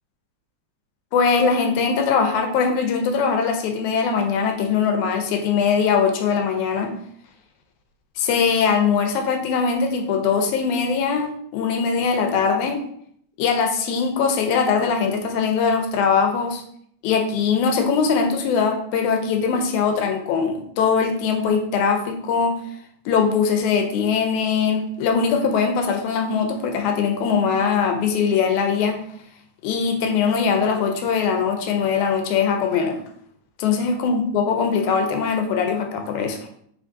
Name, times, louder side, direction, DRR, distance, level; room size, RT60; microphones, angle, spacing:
voice 1, 1.1-6.9 8.2-12.8 13.4-16.6 17.0-22.6 23.1-29.0 29.6-33.0 33.6-36.4, left 6 dB, 85° left, 4 dB, 2.0 m, -21 dB
4.4 x 3.5 x 2.5 m, 0.67 s
omnidirectional pair, 3.4 m